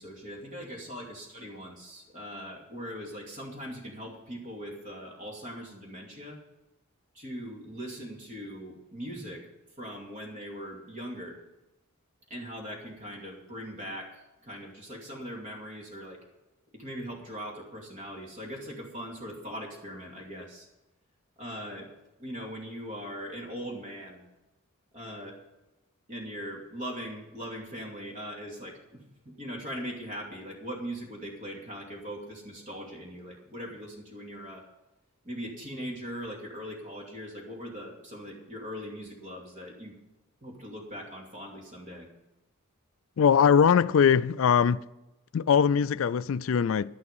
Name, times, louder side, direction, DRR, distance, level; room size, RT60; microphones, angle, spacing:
voice 1, 0.0-6.4 7.1-9.5 9.8-11.4 12.3-16.2 16.7-20.7 21.4-21.9 22.2-24.2 24.9-25.4 26.1-34.6 35.2-40.0 40.4-42.1, equal, 35° right, 2.5 m, -40 dB
voice 2, 43.2-44.8 45.3-47.0, left 7 dB, 65° left, 0.3 m, -21 dB
11.5 x 11.0 x 5.5 m
head